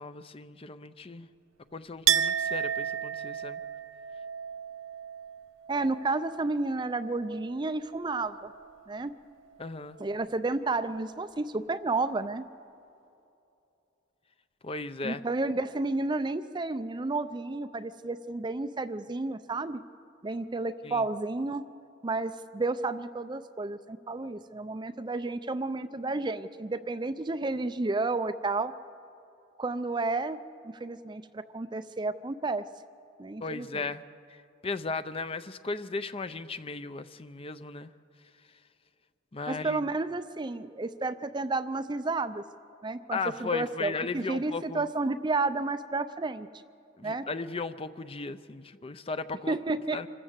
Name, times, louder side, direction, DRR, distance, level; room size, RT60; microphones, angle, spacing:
voice 1, 0.0-1.3 1.7-3.6 9.6-10.0 14.6-15.2 20.8-21.0 33.4-34.0 34.3-37.9 39.3-39.8 43.1-44.9 47.0-49.6 49.9-50.1, left 3 dB, 30° left, 12 dB, 0.6 m, -36 dB
Chink clink, 2.1-7.6 7.9-8.8, right 9 dB, 75° right, 0.5 m, -33 dB
voice 2, 5.7-8.5 8.9-9.1 10.0-12.4 15.0-19.8 20.2-21.6 22.0-28.7 29.6-32.6 33.2-33.8 39.5-42.4 42.8-46.5 47.0-47.3 49.5-50.0, right 3 dB, 20° right, 11 dB, 0.5 m, -31 dB
26.0 x 14.0 x 8.0 m, 2.7 s
head